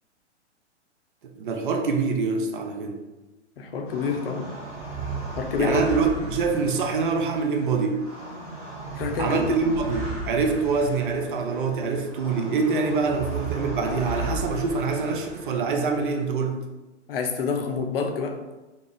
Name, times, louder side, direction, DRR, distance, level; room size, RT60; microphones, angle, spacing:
voice 1, 1.2-3.0 5.6-8.0 9.2-16.6, right 4 dB, 45° right, 4 dB, 0.4 m, -25 dB
voice 2, 3.6-4.5 5.3-5.9 8.9-9.5 17.1-18.4, left 5 dB, 55° left, 4 dB, 0.5 m, -27 dB
sound 1, 3.9-16.2, right 3 dB, 25° right, 1.4 m, -35 dB
2.4 x 2.4 x 3.6 m, 1.1 s
figure-of-eight pair, 120°, 35 cm